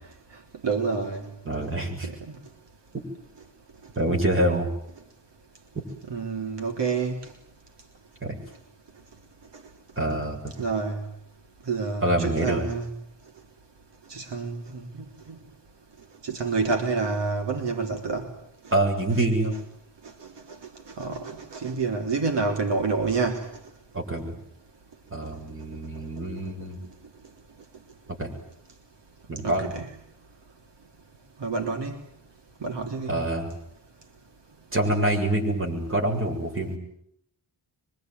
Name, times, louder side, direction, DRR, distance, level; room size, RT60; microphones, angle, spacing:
voice 1, 0.6-1.3 2.0-2.1 6.1-7.2 10.6-11.0 11.7-12.9 14.1-15.4 16.2-18.3 20.9-23.5 29.4-29.9 31.4-32.0 32.6-33.1, right 4 dB, 75° right, 3 dB, 3.5 m, -28 dB
voice 2, 1.4-2.1 2.9-3.0 4.0-4.7 5.7-5.8 8.2-8.4 10.0-10.5 12.0-12.7 18.7-19.5 23.9-24.3 25.1-26.8 28.2-28.3 29.3-29.7 33.1-33.5 34.7-36.8, right 1 dB, 30° right, 2 dB, 7.3 m, -26 dB
26.0 x 24.0 x 9.4 m, 0.71 s
wide cardioid pair, 150°, 42 cm